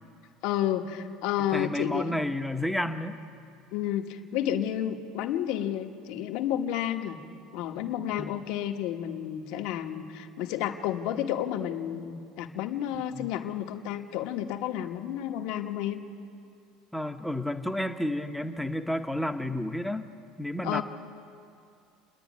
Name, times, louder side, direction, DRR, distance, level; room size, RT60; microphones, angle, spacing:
voice 1, 0.4-2.2 3.7-7.2 7.5-16.0 20.6-20.8, left 11 dB, 60° left, 5 dB, 1.4 m, -31 dB
voice 2, 1.5-3.2 8.2-8.3 13.1-13.3 16.9-20.1 20.4-20.8, left 1 dB, ahead, 6 dB, 0.7 m, -31 dB
28.0 x 11.0 x 9.4 m, 2.4 s
cardioid pair, 170°, 0 cm